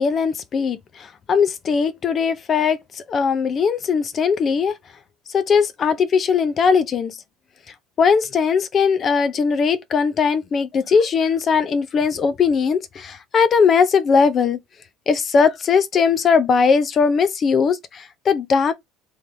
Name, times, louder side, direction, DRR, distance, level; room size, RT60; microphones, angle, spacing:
voice 1, 0.0-4.7 5.3-7.2 8.0-14.6 15.1-18.7, left 5 dB, 30° left, 0.5 m, -19 dB
3.4 x 3.0 x 2.6 m
cardioid pair, 140°, 0 cm